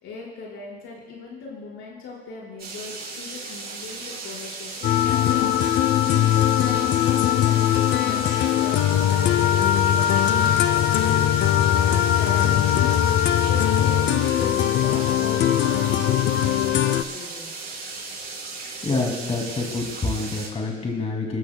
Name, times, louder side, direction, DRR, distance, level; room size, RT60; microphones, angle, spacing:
voice 1, 0.0-11.3 11.8-12.9 13.3-17.6, left 4 dB, 90° left, -4 dB, 4.7 m, -38 dB
sound 1, 2.6-20.5, right 3 dB, 55° right, 4.7 m, -36 dB
sound 2, 4.8-17.0, left 11 dB, 70° left, 0.6 m, -20 dB
voice 2, 18.8-21.4, left 3 dB, 35° left, 0 dB, 2.4 m, -27 dB
26.0 x 14.0 x 2.2 m, 1.3 s
cardioid pair, 90°, 20 cm